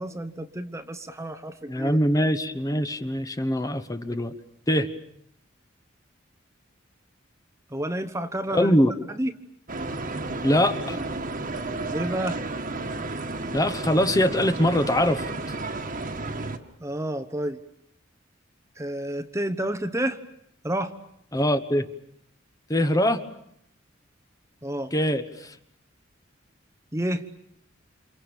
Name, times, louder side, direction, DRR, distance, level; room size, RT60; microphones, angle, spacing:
voice 1, 0.0-2.0 7.7-8.8 9.1-9.3 11.9-12.4 16.8-17.6 18.8-20.2 20.6-20.9 24.6-24.9 26.9-27.3, right 1 dB, 15° right, 9 dB, 1.1 m, -30 dB
voice 2, 1.7-4.3 4.7-4.9 8.5-8.9 10.4-11.0 13.5-15.3 21.3-21.9 22.7-23.2 24.9-25.5, equal, 20° left, 9 dB, 1.2 m, -23 dB
sound 1, 9.7-16.6, right 2 dB, 45° right, 1.8 m, -32 dB
29.5 x 27.5 x 7.1 m, 0.73 s
head